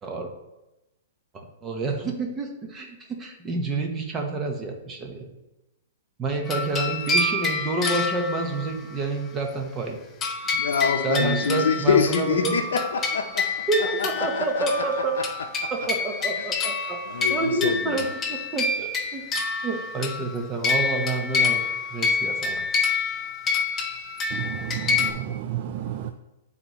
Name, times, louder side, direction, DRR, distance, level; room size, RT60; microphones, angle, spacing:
voice 1, 1.3-5.3 6.2-10.0 11.0-12.6 13.7-15.2 15.7-17.0 17.3-19.2 19.6-22.6, right 3 dB, 15° right, 1.0 m, -28 dB
sound 1, 6.5-8.9 10.2-25.1, left 4 dB, 20° left, 0.6 m, -27 dB
voice 2, 10.5-13.6 14.0-14.8 15.6-15.7 16.4-16.5 17.1-18.0, left 6 dB, 85° left, 0.6 m, -26 dB
voice 3, 24.3-26.1, right 11 dB, 40° right, 0.3 m, -31 dB
9.5 x 4.1 x 3.0 m
hypercardioid pair, 155°, 0 cm